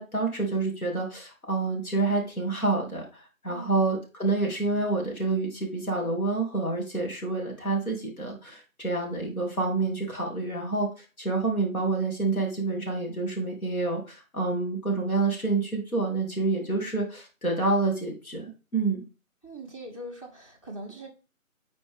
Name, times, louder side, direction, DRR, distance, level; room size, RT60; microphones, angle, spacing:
voice 1, 0.0-19.0, right 3 dB, 85° left, 0 dB, 2.5 m, -28 dB
voice 2, 3.5-3.9 16.5-16.9 19.4-21.1, right 1 dB, 25° left, 4 dB, 1.0 m, -42 dB
8.4 x 4.2 x 3.5 m, 0.33 s
figure-of-eight pair, 160°, 42 cm